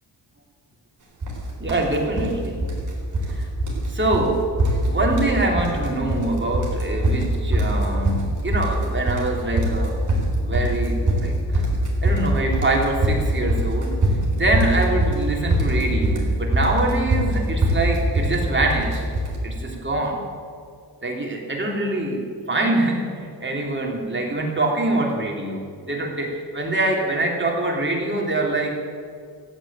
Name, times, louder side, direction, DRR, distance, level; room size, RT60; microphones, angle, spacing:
sound 1, 1.2-1.4 1.7-2.3 2.6-3.3 3.6-3.9 4.1-4.3 4.6-5.3 5.6-6.2 6.5-19.3, right 1 dB, 45° right, 4.4 m, -22 dB
voice 1, 1.6-2.6 3.3-3.5 3.9-4.5 4.8-10.0 10.4-11.6 12.0-14.0 14.3-19.0 19.4-20.2 21.0-22.2 22.5-28.7, right 2 dB, 25° right, 0 dB, 3.5 m, -24 dB
15.0 x 8.6 x 9.1 m, 2.2 s
cardioid pair, 85°, 42 cm